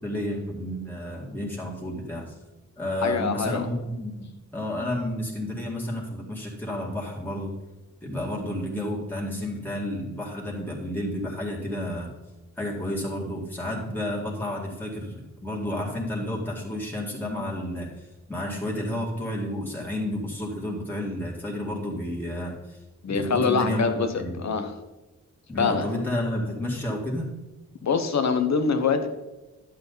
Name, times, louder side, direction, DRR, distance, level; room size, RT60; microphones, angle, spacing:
voice 1, 0.0-2.3 2.8-4.3 4.5-7.5 8.0-12.1 12.6-15.1 15.4-22.8 23.1-24.5 25.5-27.3, left 1 dB, 5° left, -4 dB, 2.1 m, -31 dB
voice 2, 3.0-3.7 23.0-24.1 24.4-24.7 25.6-25.9 27.8-29.1, left 5 dB, 65° left, 8 dB, 1.1 m, -24 dB
11.5 x 7.6 x 4.0 m, 1.1 s
wide cardioid pair, 120°, 30 cm